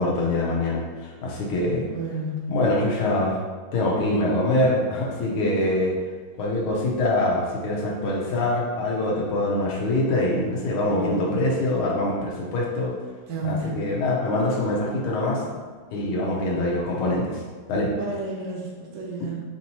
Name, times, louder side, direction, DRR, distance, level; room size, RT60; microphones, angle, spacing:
voice 1, 0.0-1.8 2.5-3.4 3.7-5.9 6.4-12.9 13.4-15.4 15.9-17.4 17.7-17.9, left 1 dB, 85° left, -4 dB, 1.6 m, -24 dB
voice 2, 1.7-2.5 10.8-11.3 13.3-13.7 18.0-19.4, right 2 dB, 65° right, -3 dB, 1.4 m, -31 dB
5.2 x 2.7 x 2.9 m, 1.5 s
omnidirectional pair, 2.3 m